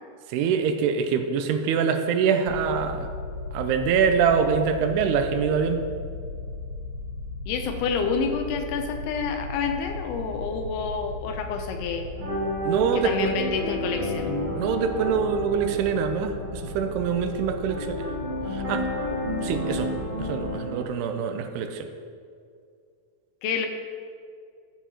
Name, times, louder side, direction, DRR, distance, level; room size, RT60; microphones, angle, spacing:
voice 1, 0.3-3.1 3.5-5.9 12.6-13.3 14.6-18.0 18.5-18.8 19.4-19.9 20.2-21.9, right 6 dB, 85° right, 7 dB, 2.7 m, -24 dB
sound 1, 2.5-20.5, left 3 dB, 70° right, 2.0 m, -37 dB
voice 2, 7.5-12.1 12.9-14.3 23.4-23.7, left 5 dB, 85° left, 5 dB, 2.7 m, -28 dB
sound 2, 12.2-20.8, equal, 15° right, 1.6 m, -31 dB
14.0 x 9.2 x 3.0 m, 2.3 s
omnidirectional pair, 4.7 m